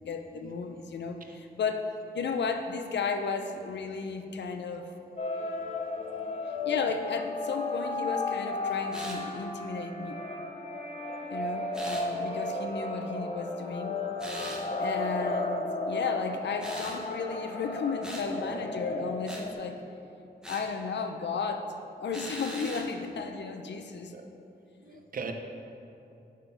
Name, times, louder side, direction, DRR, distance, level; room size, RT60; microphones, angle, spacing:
voice 1, 0.0-1.9 2.1-4.9 6.5-10.2 11.3-14.0 14.8-19.8 20.5-21.7 22.0-24.1 24.9-25.0, left 5 dB, 90° left, 6 dB, 0.6 m, -34 dB
sound 1, 5.2-19.5, left 2 dB, 35° left, 0.7 m, -34 dB
voice 2, 5.9-6.3 24.1-24.3 24.8-25.3, right 5 dB, 55° right, 5 dB, 0.7 m, -41 dB
sound 2, 8.9-9.2 11.7-12.1 14.2-14.6 16.6-17.0 18.0-18.3 19.3-19.5 20.4-20.7 22.1-22.9, right 1 dB, 5° right, 1.0 m, -40 dB
11.0 x 3.8 x 5.6 m, 2.8 s
wide cardioid pair, 155°, 18 cm